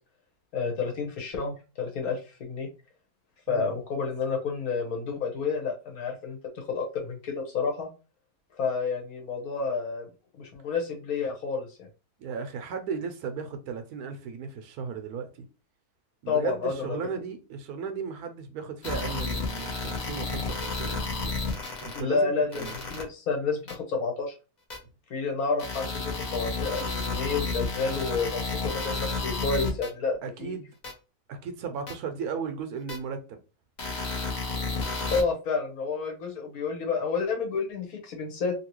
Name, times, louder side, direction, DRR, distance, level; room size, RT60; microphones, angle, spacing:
voice 1, 0.5-2.7 3.5-7.9 8.6-10.0 10.4-11.9 16.3-17.0 21.9-22.6 22.9-24.3 25.1-28.4 28.7-30.5 35.1-38.5, left 4 dB, 65° left, 1.3 m, -30 dB
voice 2, 12.2-15.5 16.2-21.4 21.8-22.7 30.2-30.7 31.3-33.4, right 6 dB, 75° right, 1.0 m, -36 dB
sound 1, 18.8-22.0 22.5-23.0 23.7-23.8 24.7-24.8 25.6-29.9 30.8-30.9 31.9-32.0 32.9-33.0 33.8-35.2, left 3 dB, 40° left, 0.6 m, -31 dB
2.9 x 2.7 x 3.0 m
omnidirectional pair, 1.7 m